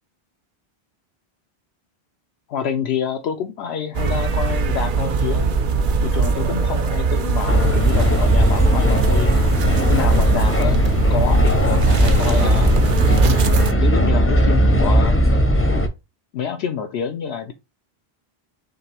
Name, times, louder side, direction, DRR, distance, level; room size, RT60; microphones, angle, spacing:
voice 1, 2.5-5.5 6.0-9.4 9.9-10.8 11.1-12.7 13.8-15.2 16.3-17.5, left 7 dB, 80° left, 0.8 m, -27 dB
sound 1, 3.9-13.7, right 5 dB, 55° right, 0.7 m, -21 dB
sound 2, 7.5-15.9, equal, 15° left, 0.6 m, -17 dB
5.2 x 3.2 x 2.9 m
omnidirectional pair, 1.1 m